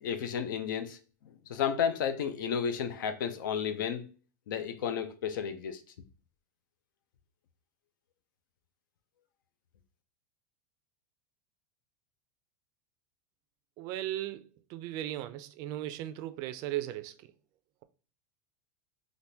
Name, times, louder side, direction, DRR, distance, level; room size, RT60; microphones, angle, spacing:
voice 1, 0.0-1.0 1.5-4.0 4.5-5.8, left 7 dB, 85° left, 0.6 m, -32 dB
voice 2, 13.8-14.4 14.7-17.1, right 13 dB, 40° right, 0.4 m, -36 dB
3.4 x 2.5 x 2.7 m
supercardioid pair, 160°, 10 cm